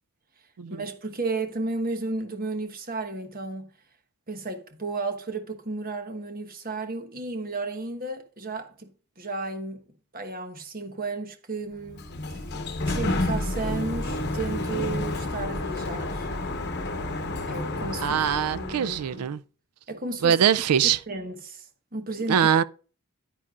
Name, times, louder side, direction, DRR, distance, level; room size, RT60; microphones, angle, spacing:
voice 1, 0.7-3.7 4.3-8.9 9.2-9.8 10.1-12.0 12.9-16.3 17.5-18.2 18.5-19.3 19.9-20.4 21.1-22.4, right 3 dB, 40° right, 1.2 m, -33 dB
Sliding door, 11.8-19.2, left 2 dB, 50° left, 1.0 m, -30 dB
voice 2, 18.0-19.4 20.2-21.0 22.3-22.6, right 8 dB, 85° right, 0.4 m, -22 dB
9.8 x 9.7 x 2.5 m
head